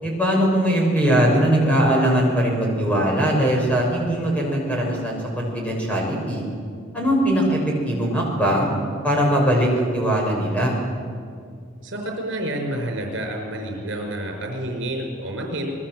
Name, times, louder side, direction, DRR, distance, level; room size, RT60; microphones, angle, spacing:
voice 1, 0.0-6.4 6.9-7.6 7.8-8.7 9.0-10.7, equal, 5° left, -2 dB, 6.1 m, -20 dB
voice 2, 11.8-15.7, right 1 dB, 65° right, 2 dB, 5.3 m, -29 dB
26.5 x 21.0 x 7.7 m, 2.1 s
head